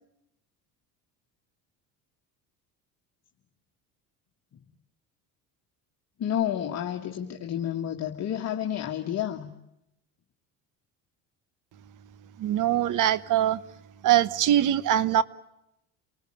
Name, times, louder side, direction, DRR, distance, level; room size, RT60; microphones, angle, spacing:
voice 1, 6.2-9.5, left 10 dB, 45° left, 1.9 m, -30 dB
voice 2, 12.4-13.6 14.0-15.2, right 11 dB, 60° right, 1.2 m, -22 dB
29.0 x 19.5 x 8.9 m
cardioid pair, 105°, 36 cm